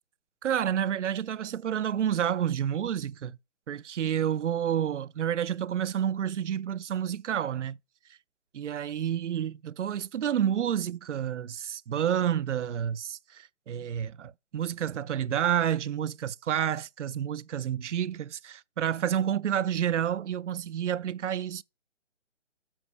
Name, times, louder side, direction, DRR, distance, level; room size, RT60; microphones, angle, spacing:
voice 1, 0.4-3.4 3.7-7.8 8.5-21.6, right 9 dB, 75° right, 0.5 m, -29 dB
7.2 x 5.3 x 6.7 m
figure-of-eight pair, 150°, 36 cm